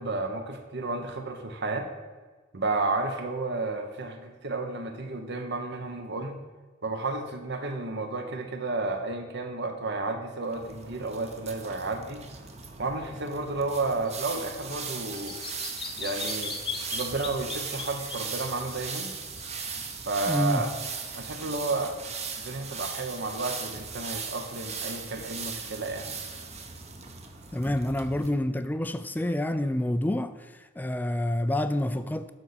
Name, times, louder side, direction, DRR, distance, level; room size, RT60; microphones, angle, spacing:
voice 1, 0.0-1.9 2.5-6.4 6.8-12.2 12.8-15.4 16.0-16.5 16.9-19.1 20.0-20.7 21.1-21.9 22.4-26.2, right 3 dB, 60° right, 1.2 m, -32 dB
sound 1, 10.5-28.3, right 5 dB, 35° right, 1.0 m, -38 dB
Bird vocalization bird call bird song, 14.1-20.0, left 5 dB, 25° left, 0.9 m, -39 dB
voice 2, 20.3-20.7 27.5-32.3, left 1 dB, 10° left, 0.3 m, -28 dB
12.0 x 4.2 x 6.9 m
head